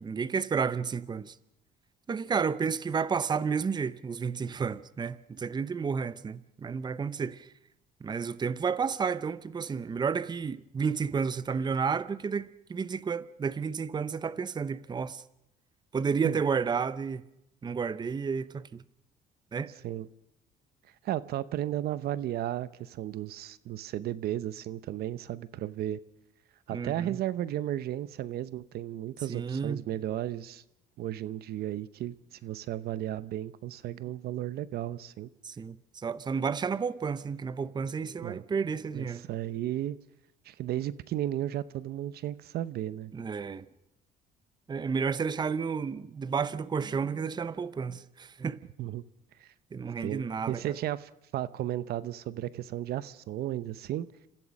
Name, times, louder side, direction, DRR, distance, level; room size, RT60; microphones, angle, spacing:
voice 1, 0.0-1.4 2.1-7.5 8.0-15.2 15.9-17.2 17.6-18.8 19.5-19.7 26.7-27.2 29.3-29.8 35.4-39.3 43.1-43.6 44.7-48.6 49.7-50.8, right 6 dB, 25° right, 0.7 m, -31 dB
voice 2, 21.0-26.0 26.7-30.6 31.0-35.3 38.2-38.4 38.9-40.0 40.4-43.1 48.8-49.0 49.4-49.5 50.0-54.1, right 12 dB, 65° right, 0.8 m, -34 dB
28.5 x 15.5 x 6.4 m
cardioid pair, 110°, 17 cm